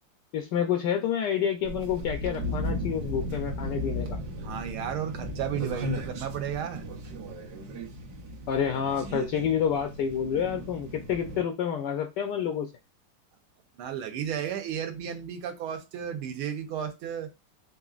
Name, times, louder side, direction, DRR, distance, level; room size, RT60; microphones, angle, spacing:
voice 1, 0.3-4.2 8.5-12.7, left 8 dB, 80° left, 0.9 m, -28 dB
sound 1, 1.6-11.4, equal, 60° right, 1.1 m, -35 dB
voice 2, 4.4-6.8 13.8-17.3, right 9 dB, 80° right, 1.6 m, -33 dB
4.0 x 3.8 x 2.4 m
omnidirectional pair, 2.4 m